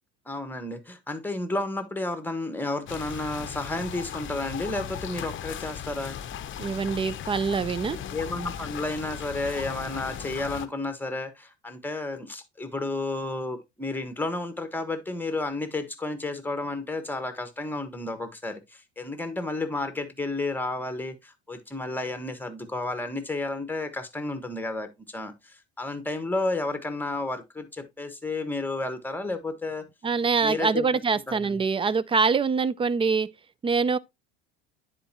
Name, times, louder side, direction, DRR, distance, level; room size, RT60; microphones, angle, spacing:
voice 1, 0.3-6.2 8.1-29.8 30.4-30.8 31.3-31.6, left 2 dB, 5° left, 1.3 m, -32 dB
sound 1, 2.9-10.7, left 9 dB, 40° left, 0.7 m, -37 dB
voice 2, 6.6-8.0 30.0-33.3 33.6-34.0, right 5 dB, 20° right, 0.3 m, -24 dB
10.0 x 4.5 x 2.8 m
hypercardioid pair, 75°, 32 cm